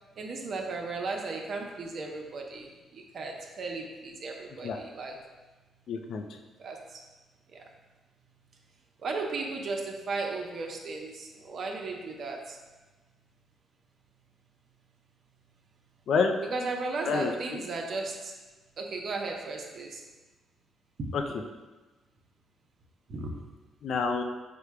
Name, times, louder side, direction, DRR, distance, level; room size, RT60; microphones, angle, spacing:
voice 1, 0.2-5.2 6.6-7.0 7.5-7.7 9.0-12.6 16.5-18.3 18.8-20.0 21.0-21.2 23.1-23.4, right 3 dB, 55° right, 1 dB, 0.7 m, -35 dB
voice 2, 5.9-6.4 16.1-16.4 17.0-17.3 21.1-21.4 23.8-24.2, left 5 dB, 65° left, 4 dB, 0.5 m, -28 dB
5.2 x 2.2 x 4.6 m, 1.2 s
cardioid pair, 90°, 0 cm